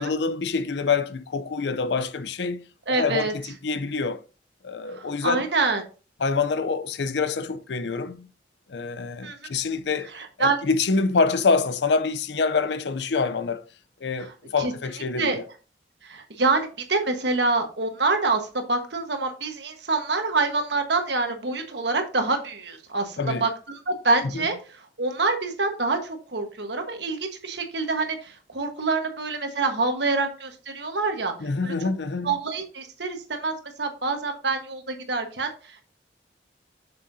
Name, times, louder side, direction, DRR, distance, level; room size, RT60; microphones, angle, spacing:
voice 1, 0.0-4.2 4.6-5.4 6.2-8.3 8.7-10.1 10.4-13.6 14.0-15.4 23.2-23.5 24.3-24.4 31.4-32.4, left 4 dB, 70° left, 0.5 m, -26 dB
voice 2, 2.9-3.3 4.9-5.8 9.2-9.4 10.0-10.6 14.2-14.3 14.6-14.7 15.1-15.4 16.0-31.3 31.6-31.7 32.2-35.8, right 3 dB, 65° right, 1.4 m, -26 dB
7.4 x 6.8 x 2.7 m
head